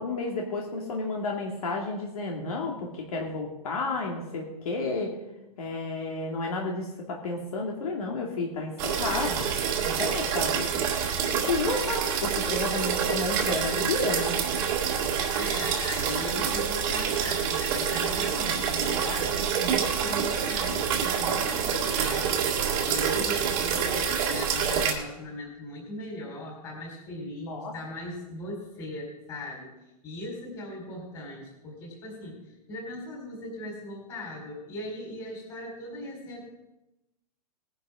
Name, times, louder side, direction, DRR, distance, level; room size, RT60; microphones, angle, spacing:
voice 1, 0.0-5.1 5.6-9.5 9.8-10.7 11.3-14.4 27.4-27.7, left 3 dB, 60° left, -1 dB, 2.4 m, -31 dB
sound 1, 8.8-24.9, right 7 dB, 25° right, 1.9 m, -27 dB
voice 2, 15.3-22.4 22.8-29.7 30.0-36.4, left 1 dB, 20° left, -2 dB, 4.4 m, -38 dB
19.5 x 10.5 x 3.8 m, 0.95 s
hypercardioid pair, 175°, 21 cm